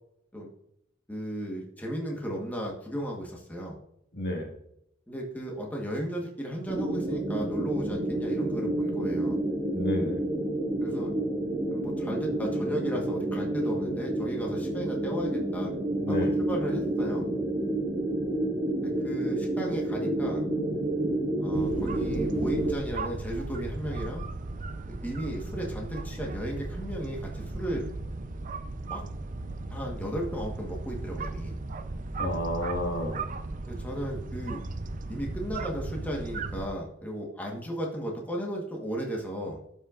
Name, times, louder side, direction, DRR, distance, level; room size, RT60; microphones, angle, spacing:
voice 1, 1.1-3.8 5.1-9.4 10.8-11.1 11.7-15.7 16.1-17.3 19.0-20.4 21.4-24.2 25.0-27.9 28.8-29.0 29.7-31.5 33.7-34.6 35.1-39.6, equal, 10° left, -1 dB, 1.3 m, -35 dB
voice 2, 4.1-4.5 9.7-10.2 16.0-16.3 32.2-33.2, left 1 dB, 55° left, 1 dB, 1.8 m, -30 dB
sound 1, 6.7-22.7, right 1 dB, 25° right, 1.7 m, -29 dB
sound 2, 21.5-36.7, right 3 dB, 40° right, 0.5 m, -36 dB
12.0 x 5.5 x 2.5 m, 0.76 s
head